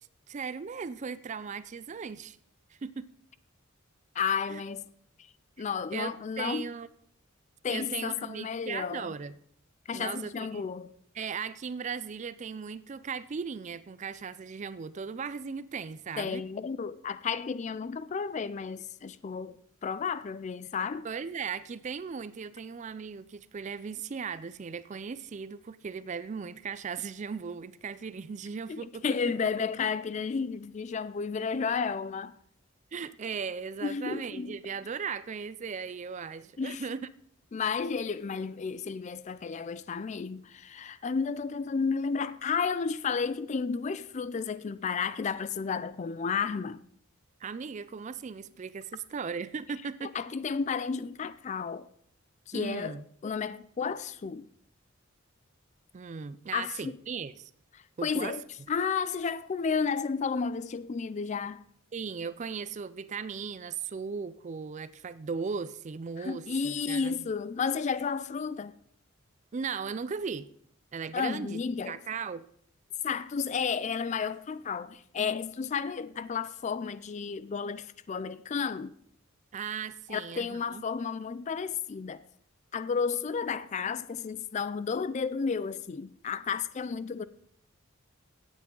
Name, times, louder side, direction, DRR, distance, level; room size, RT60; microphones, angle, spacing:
voice 1, 0.3-2.4 2.8-3.1 4.5-4.6 5.9-6.9 7.7-9.3 9.9-10.7 11.2-16.4 21.0-29.0 32.9-37.1 47.4-50.1 52.5-53.0 55.9-57.5 58.0-58.4 61.9-67.3 69.5-70.5 70.9-72.4 79.5-80.8, right 5 dB, 35° right, 0.4 m, -37 dB
voice 2, 4.1-4.9 5.6-6.7 7.6-9.2 9.9-10.9 16.2-21.1 28.7-32.3 33.8-34.6 36.6-36.8 37.5-46.8 50.0-51.9 52.5-54.5 56.5-57.0 57.7-61.6 66.2-68.7 71.1-72.0 73.0-79.0 80.1-82.2 82.7-87.2, left 5 dB, 35° left, 0.3 m, -32 dB
16.5 x 8.2 x 3.8 m
head